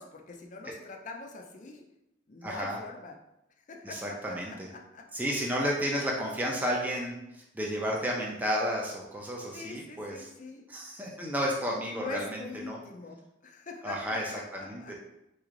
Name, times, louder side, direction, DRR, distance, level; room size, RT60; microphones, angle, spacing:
voice 1, 0.0-1.8 2.3-3.1 3.7-5.1 9.5-10.7 11.9-14.9, left 3 dB, 40° left, 2 dB, 0.5 m, -43 dB
voice 2, 2.4-2.8 3.8-4.7 5.1-10.3 10.7-12.8 13.8-14.9, equal, 10° right, -2 dB, 0.6 m, -32 dB
4.4 x 3.2 x 3.7 m, 0.87 s
head